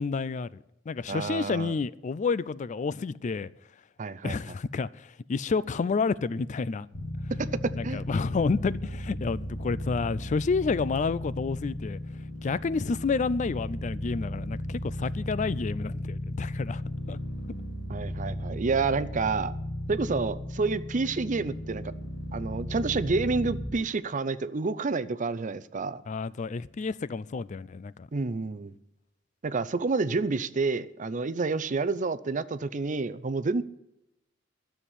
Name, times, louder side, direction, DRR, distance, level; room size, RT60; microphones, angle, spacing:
voice 1, 0.0-3.5 4.2-6.9 7.7-12.0 12.4-16.8 17.1-17.2 26.1-28.1, left 4 dB, 40° left, 0.4 m, -30 dB
voice 2, 1.1-1.7 4.0-4.4 7.4-7.5 7.8-8.0 17.9-19.5 19.9-21.9 22.3-26.0 28.1-28.7 29.4-33.6, right 4 dB, 40° right, 0.6 m, -29 dB
sound 1, 6.9-23.7, left 1 dB, 65° left, 2.8 m, -35 dB
12.5 x 7.3 x 9.9 m
head